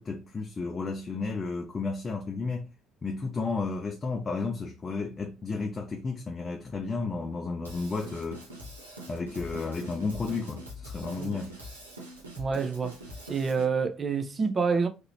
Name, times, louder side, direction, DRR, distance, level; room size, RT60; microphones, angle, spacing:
voice 1, 0.0-2.7 3.0-8.4 9.1-11.6, left 4 dB, 25° left, 0.6 m, -32 dB
Drum kit / Drum, 7.6-13.6, equal, 80° right, 0.9 m, -43 dB
voice 2, 12.4-13.0 13.3-14.9, right 5 dB, 30° right, 0.7 m, -27 dB
3.8 x 2.8 x 2.9 m
figure-of-eight pair, 55°, 0 cm